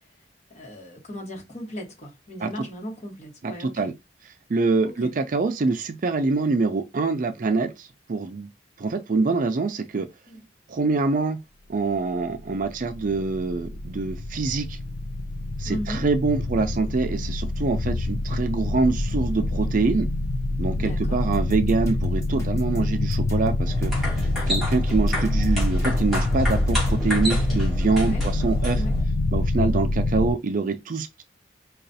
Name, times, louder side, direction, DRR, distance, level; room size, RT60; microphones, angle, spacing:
voice 1, 0.5-3.9 4.8-5.1 10.3-10.4 15.6-16.1 20.7-21.2 28.0-28.2 28.7-29.0, equal, 40° left, 1.3 m, -37 dB
voice 2, 3.4-3.9 4.5-8.5 8.8-10.1 10.7-11.4 11.7-14.8 15.6-20.1 20.6-28.8 29.3-31.2, right 3 dB, 45° right, 0.4 m, -25 dB
sound 1, 12.3-30.3, left 2 dB, 80° left, 0.5 m, -26 dB
sound 2, 21.3-27.0, left 1 dB, 15° left, 0.9 m, -39 dB
sound 3, 23.6-29.0, equal, ahead, 2.4 m, -31 dB
4.9 x 2.3 x 2.6 m
head